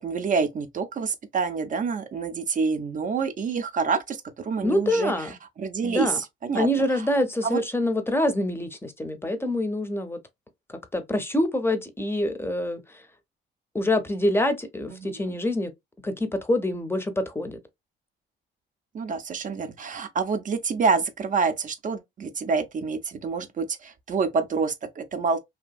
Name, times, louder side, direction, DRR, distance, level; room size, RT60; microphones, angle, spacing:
voice 1, 0.0-7.0 7.4-7.6 15.0-15.4 18.9-25.4, right 5 dB, 40° right, 0.4 m, -27 dB
voice 2, 4.6-5.3 5.8-6.2 6.5-10.2 10.7-12.8 13.7-15.7 16.0-17.6, left 1 dB, 10° left, 0.6 m, -26 dB
2.7 x 2.5 x 2.3 m
cardioid pair, 90°, 20 cm